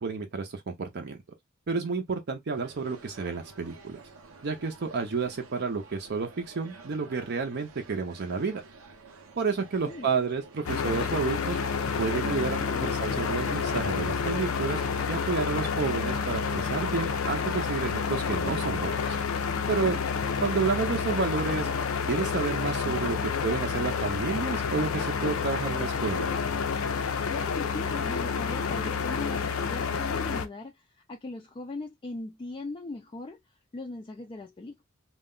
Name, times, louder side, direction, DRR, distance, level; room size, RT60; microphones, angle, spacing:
voice 1, 0.0-1.2 1.7-4.0 4.4-8.6 9.4-11.6 12.0-14.8 15.1-19.2 19.7-20.0 20.4-21.7 22.1-23.2 23.4-26.3, right 4 dB, 55° right, 0.5 m, -30 dB
sound 1, 2.5-18.5, right 4 dB, 90° right, 0.7 m, -50 dB
voice 2, 9.6-10.1 12.2-12.7 22.8-23.3 27.3-33.4 33.7-34.8, left 2 dB, 25° left, 0.3 m, -40 dB
sound 2, 10.7-30.5, left 5 dB, 80° left, 0.5 m, -29 dB
2.3 x 2.1 x 3.6 m
head